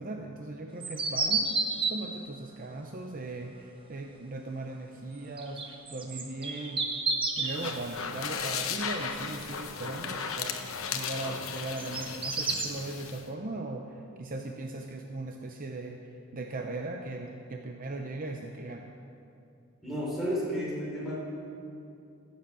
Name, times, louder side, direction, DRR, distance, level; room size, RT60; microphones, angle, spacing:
voice 1, 0.0-1.6 1.9-6.9 7.4-10.6 10.9-16.0 16.3-18.9, right 2 dB, 40° right, 3 dB, 0.7 m, -38 dB
sound 1, 0.8-2.0 5.4-7.7 11.6-12.7, right 4 dB, 25° right, 1.1 m, -30 dB
sound 2, 7.4-13.2, left 6 dB, 75° left, 0.9 m, -36 dB
voice 2, 19.8-21.1, equal, ahead, -7 dB, 4.0 m, -32 dB
16.0 x 7.3 x 7.4 m, 2.6 s
head